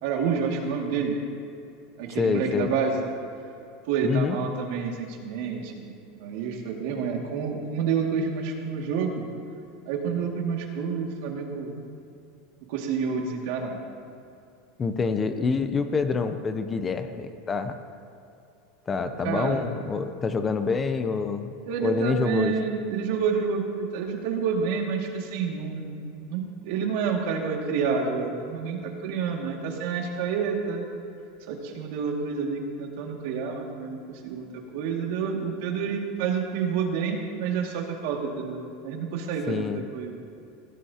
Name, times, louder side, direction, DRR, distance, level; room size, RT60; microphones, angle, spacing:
voice 1, 0.0-1.2 2.0-3.0 3.8-5.9 6.2-9.2 9.9-11.7 12.7-13.8 19.2-19.7 21.7-26.0 26.3-30.9 31.5-34.5 34.7-40.1, right 6 dB, 60° right, 1 dB, 2.1 m, -29 dB
voice 2, 2.1-2.7 4.0-4.4 14.8-17.8 18.9-21.5 21.8-22.5 39.5-39.8, left 5 dB, 15° left, 8 dB, 0.6 m, -26 dB
20.5 x 16.0 x 2.9 m, 2.6 s
supercardioid pair, 165°, 0 cm